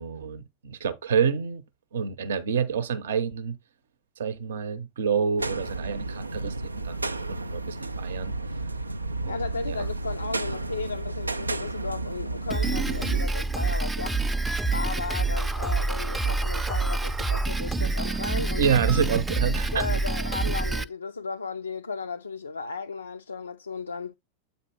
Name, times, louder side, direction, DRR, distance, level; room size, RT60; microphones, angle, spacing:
voice 1, 0.0-1.6 1.9-3.6 4.2-8.3 9.2-9.9 18.6-19.9, right 6 dB, 65° right, 0.7 m, -28 dB
sound 1, 5.4-13.2, right 2 dB, 80° right, 0.3 m, -32 dB
voice 2, 9.3-14.2 14.5-18.6 19.7-24.2, left 4 dB, 75° left, 0.4 m, -35 dB
Drum kit, 12.5-20.8, right 3 dB, 5° right, 0.5 m, -27 dB
8.1 x 2.7 x 4.6 m
figure-of-eight pair, 90°, 0 cm